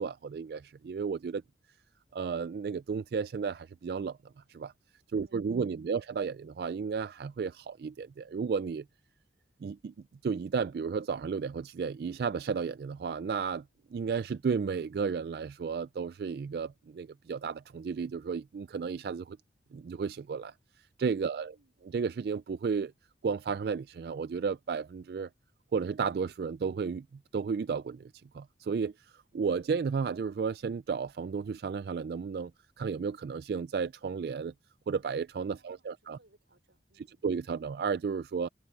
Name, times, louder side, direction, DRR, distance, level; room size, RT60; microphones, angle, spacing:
voice 1, 0.0-1.4 2.1-4.2 4.5-4.7 5.1-8.8 9.6-9.9 10.2-13.6 13.9-19.4 19.7-21.5 21.9-22.9 23.2-25.3 25.7-27.1 27.3-32.5 32.8-34.5 34.9-36.2 37.0-38.5, right 5 dB, 55° right, 0.3 m, -33 dB
voice 2, 5.1-6.1 21.2-21.9 35.6-37.3, right 2 dB, 85° right, 4.8 m, -68 dB
head